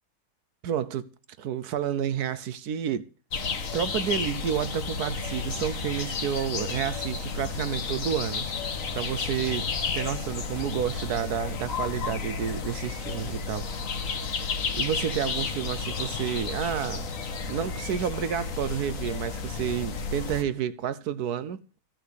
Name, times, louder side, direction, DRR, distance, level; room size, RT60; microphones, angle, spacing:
voice 1, 0.6-1.1 1.4-3.1 3.7-8.4 8.9-17.1 17.5-21.6, right 9 dB, 80° right, 1.3 m, -30 dB
sound 1, 3.3-20.4, left 4 dB, 60° left, 1.6 m, -32 dB
15.0 x 6.1 x 8.3 m
omnidirectional pair, 1.6 m